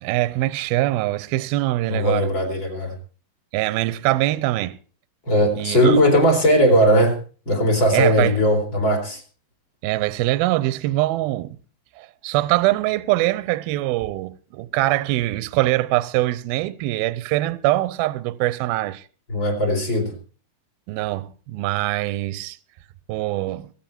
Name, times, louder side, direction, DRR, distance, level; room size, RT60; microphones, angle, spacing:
voice 1, 0.0-2.3 3.5-4.8 5.6-6.0 7.9-8.4 9.8-11.6 12.0-19.0 20.9-22.6 23.1-23.7, right 17 dB, 75° right, 2.4 m, -23 dB
voice 2, 1.9-2.9 5.3-7.2 7.5-9.2 19.3-20.1, equal, 30° left, 4.3 m, -18 dB
23.5 x 9.2 x 4.4 m
omnidirectional pair, 4.8 m